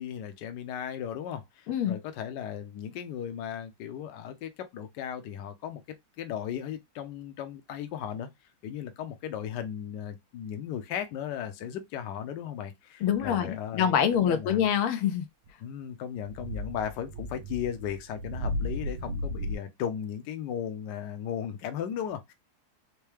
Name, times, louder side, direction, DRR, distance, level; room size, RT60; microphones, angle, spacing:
voice 1, 0.0-5.8 6.2-8.3 8.6-14.7 15.6-22.3, left 9 dB, 65° left, 1.2 m, -36 dB
voice 2, 13.0-15.3, left 8 dB, 85° left, 1.5 m, -25 dB
sound 1, 13.1-13.4 14.1-14.5 15.5-15.6 16.2-19.5, left 1 dB, 90° right, 1.5 m, -35 dB
4.6 x 2.2 x 3.3 m
omnidirectional pair, 2.3 m